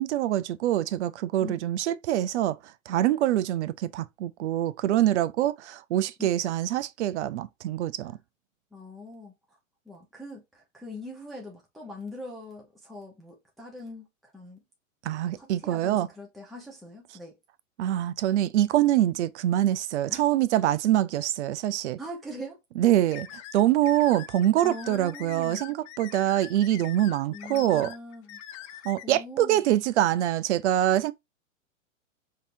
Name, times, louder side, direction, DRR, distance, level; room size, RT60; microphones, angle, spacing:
voice 1, 0.0-2.6 2.9-8.2 15.0-16.1 17.8-22.0 22.8-27.9 28.8-31.1, right 13 dB, 60° right, 0.5 m, -25 dB
voice 2, 8.7-9.6 9.8-14.6 15.4-17.4 20.1-20.2 22.0-22.6 24.6-25.6 27.3-28.4 28.7-29.6, left 1 dB, ahead, 0.8 m, -42 dB
sound 1, 23.1-29.0, left 12 dB, 25° left, 0.3 m, -44 dB
5.3 x 2.8 x 2.6 m
hypercardioid pair, 110°, 40 cm